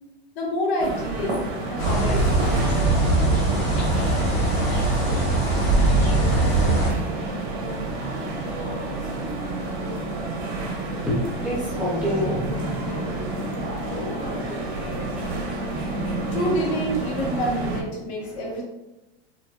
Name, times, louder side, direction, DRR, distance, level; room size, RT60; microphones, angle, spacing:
voice 1, 0.3-2.8 16.3-18.7, equal, 70° left, -2 dB, 1.2 m, -28 dB
sound 1, 0.8-17.8, right 2 dB, 85° right, 1.1 m, -29 dB
sound 2, 1.8-6.9, right 2 dB, 20° left, 0.9 m, -21 dB
voice 2, 11.0-16.4 18.3-18.5, left 1 dB, 5° right, -8 dB, 0.4 m, -31 dB
4.0 x 2.5 x 2.2 m, 0.99 s
supercardioid pair, 170°, 32 cm